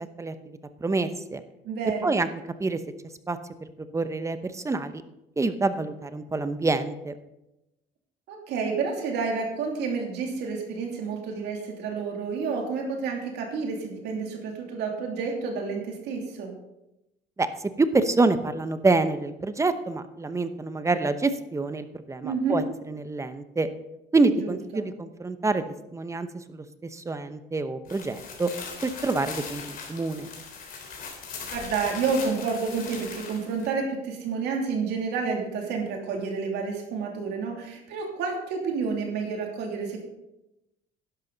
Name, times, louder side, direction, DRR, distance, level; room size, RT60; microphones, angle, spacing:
voice 1, 0.8-1.4 2.0-2.3 2.6-2.8 3.3-3.4 3.9-5.0 5.4-7.1 17.4-17.5 17.8-23.7 24.1-25.6 25.9-26.6 26.9-28.5 28.8-30.3, right 3 dB, 15° right, 10 dB, 0.9 m, -26 dB
voice 2, 1.6-2.2 8.3-16.5 22.2-22.6 24.4-24.9 31.5-40.0, right 5 dB, 80° right, 2 dB, 2.8 m, -30 dB
sound 1, 27.8-33.7, left 5 dB, 60° left, 3.4 m, -40 dB
11.5 x 11.0 x 4.0 m, 0.91 s
cardioid pair, 110°, 17 cm